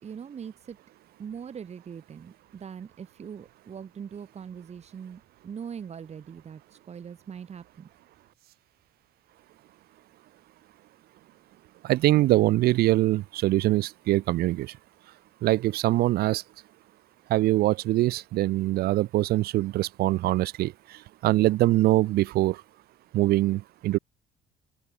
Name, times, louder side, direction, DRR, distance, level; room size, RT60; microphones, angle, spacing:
voice 1, 0.0-0.8 1.2-6.6 6.9-7.9, right 7 dB, 40° right, 3.3 m, -41 dB
voice 2, 11.8-14.7 15.4-16.4 17.3-22.6 23.1-24.0, right 16 dB, 65° right, 0.4 m, -23 dB
open air
cardioid pair, 110°, 17 cm